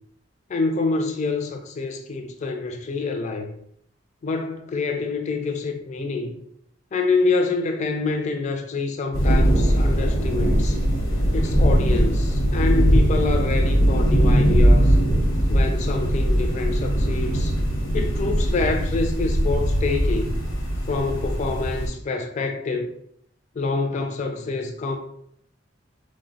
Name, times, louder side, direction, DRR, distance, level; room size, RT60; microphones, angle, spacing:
voice 1, 0.5-3.5 4.2-6.4 6.9-10.8 11.3-15.0 15.5-17.5 17.9-20.4 20.9-22.9 23.6-25.0, left 3 dB, 40° left, 0.3 m, -26 dB
sound 1, 9.1-21.9, equal, 90° left, 0.8 m, -20 dB
3.1 x 2.0 x 2.6 m
head